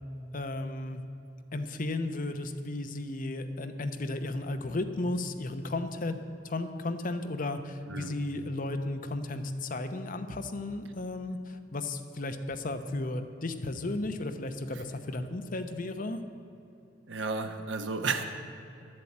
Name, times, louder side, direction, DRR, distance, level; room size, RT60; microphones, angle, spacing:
voice 1, 0.3-1.0 1.5-6.2 6.4-16.2, left 2 dB, 45° left, 8 dB, 0.8 m, -34 dB
voice 2, 17.1-18.2, right 4 dB, 80° right, 6 dB, 1.1 m, -32 dB
12.0 x 7.6 x 8.7 m, 2.8 s
head